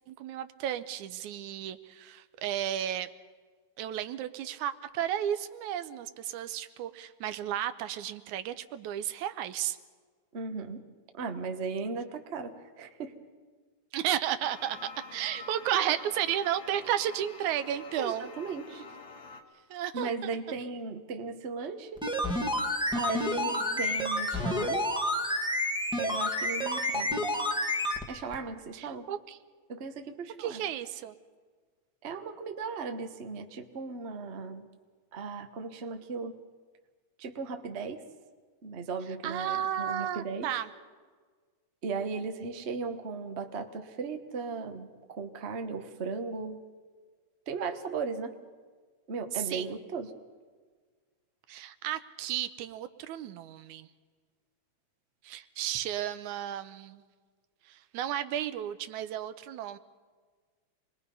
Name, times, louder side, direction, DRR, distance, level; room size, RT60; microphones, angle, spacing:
voice 1, 0.1-3.1 3.8-9.8 13.9-14.8 15.1-18.3 19.7-20.4 23.3-23.8 28.7-29.4 30.4-31.2 39.2-40.7 49.3-49.7 51.5-53.9 55.2-57.0 57.7-59.8, right 11 dB, 90° right, 12 dB, 2.3 m, -33 dB
voice 2, 10.3-10.8 11.1-13.1 18.0-18.8 19.9-22.0 22.9-24.9 25.9-27.3 28.1-29.1 29.7-30.6 32.0-34.7 35.1-36.4 37.2-38.0 38.6-40.5 41.8-46.6 47.5-48.4 49.1-50.1, right 4 dB, 45° right, 6 dB, 0.8 m, -37 dB
sound 1, 14.4-19.4, left 4 dB, 85° left, 3.0 m, -47 dB
sound 2, 22.0-28.0 28.3-28.4, left 1 dB, 5° right, 0.9 m, -29 dB
28.5 x 20.5 x 5.4 m, 1.5 s
omnidirectional pair, 3.3 m